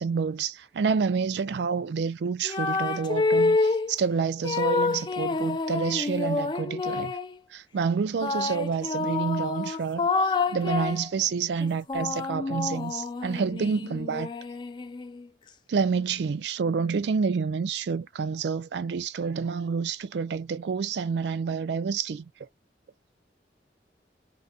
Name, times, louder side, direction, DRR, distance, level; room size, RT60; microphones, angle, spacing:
voice 1, 0.0-7.2 7.5-14.3 15.7-22.3, right 5 dB, 70° right, 0.4 m, -28 dB
sound 1, 2.4-3.9 4.4-7.4 8.2-11.1 11.6-15.2, left 3 dB, 25° left, 0.3 m, -28 dB
3.7 x 2.1 x 2.4 m
head